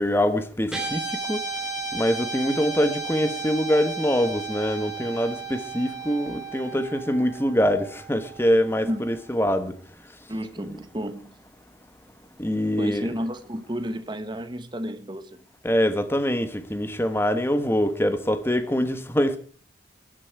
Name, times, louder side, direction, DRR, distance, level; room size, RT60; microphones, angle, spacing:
voice 1, 0.0-1.4 1.9-9.8 12.4-13.1 15.6-19.4, equal, 10° left, 1.2 m, -24 dB
Guitar, 0.7-9.2, right 3 dB, 5° right, 3.9 m, -34 dB
voice 2, 10.3-11.4 12.8-15.5, equal, 25° right, 1.2 m, -32 dB
22.0 x 11.5 x 4.7 m
head